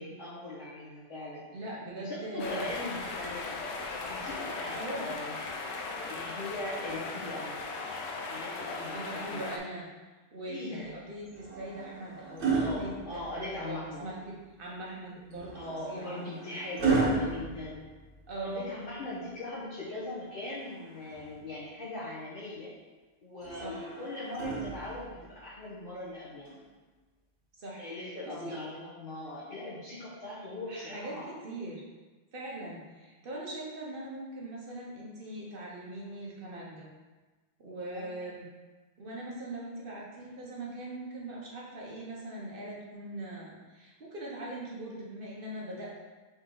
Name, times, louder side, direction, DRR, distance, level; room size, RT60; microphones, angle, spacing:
voice 1, 0.0-1.4 1.9-3.6 4.0-5.4 6.0-7.6 8.3-9.5 10.5-10.9 12.5-14.1 15.5-17.8 18.4-22.7 23.2-26.5 27.8-31.3 37.9-38.1, left 2 dB, 60° left, -11 dB, 1.3 m, -40 dB
voice 2, 1.5-2.7 4.7-5.1 8.9-9.8 10.3-13.2 13.6-16.2 18.3-18.6 23.6-23.9 27.6-27.8 28.2-28.6 30.7-31.8 32.3-36.9 37.6-38.4 39.0-46.0, right 1 dB, 55° right, -4 dB, 1.2 m, -41 dB
sound 1, 2.4-9.6, left 3 dB, 80° left, 0.9 m, -38 dB
sound 2, 11.3-13.7 15.3-18.5 20.3-21.4 23.4-25.2 26.5-26.7, right 4 dB, 90° right, 1.2 m, -34 dB
4.2 x 3.0 x 3.8 m, 1.3 s
omnidirectional pair, 1.1 m